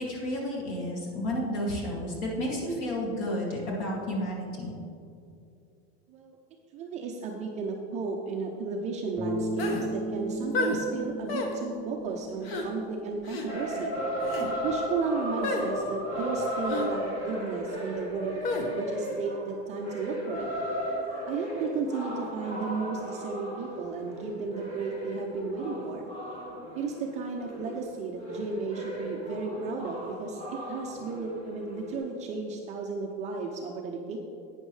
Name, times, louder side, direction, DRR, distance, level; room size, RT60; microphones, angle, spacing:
voice 1, 0.0-4.8, equal, 45° left, -3 dB, 2.3 m, -31 dB
voice 2, 6.7-14.0 14.6-20.5 21.3-26.1 26.7-30.4 30.7-34.2, right 4 dB, 20° right, 1 dB, 0.4 m, -34 dB
Bass guitar, 9.2-13.5, right 1 dB, ahead, 0.9 m, -35 dB
sound 1, 9.6-9.9 10.5-10.8 11.3-11.5 12.4-12.7 13.2-13.5 14.2-14.5 15.4-15.7 16.7-16.9 18.4-18.7, left 3 dB, 65° left, 1.4 m, -31 dB
sound 2, 13.5-32.0, equal, 20° left, 1.9 m, -35 dB
11.5 x 8.9 x 3.2 m, 2.5 s
supercardioid pair, 165°, 32 cm